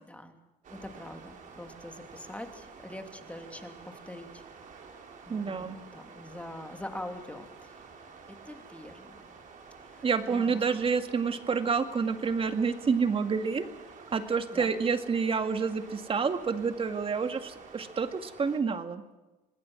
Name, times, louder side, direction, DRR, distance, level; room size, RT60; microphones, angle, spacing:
sound 1, 0.6-18.6, right 5 dB, 50° right, 4.4 m, -50 dB
voice 1, 0.7-4.4 5.2-7.8 8.4-9.4 9.8-10.6 14.5-14.7, left 1 dB, 10° left, 5 dB, 2.9 m, -44 dB
voice 2, 5.3-5.8 10.0-13.7 14.1-19.0, right 5 dB, 35° right, 8 dB, 2.1 m, -28 dB
26.0 x 20.0 x 6.3 m, 1.1 s
cardioid pair, 110°, 17 cm